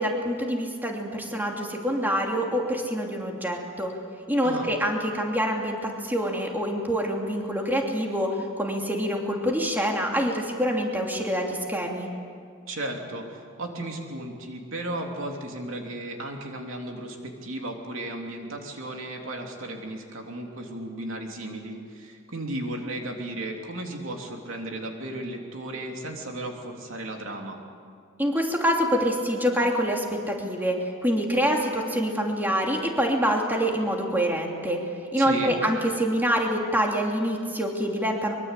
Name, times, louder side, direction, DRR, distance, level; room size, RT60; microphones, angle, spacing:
voice 1, 0.0-3.9 4.3-12.1 28.2-30.8 31.0-34.8 35.1-38.3, equal, 10° right, 0 dB, 2.9 m, -26 dB
voice 2, 12.7-27.6 35.2-35.6, right 1 dB, 70° right, 2 dB, 3.2 m, -35 dB
24.0 x 23.5 x 8.3 m, 2.2 s
head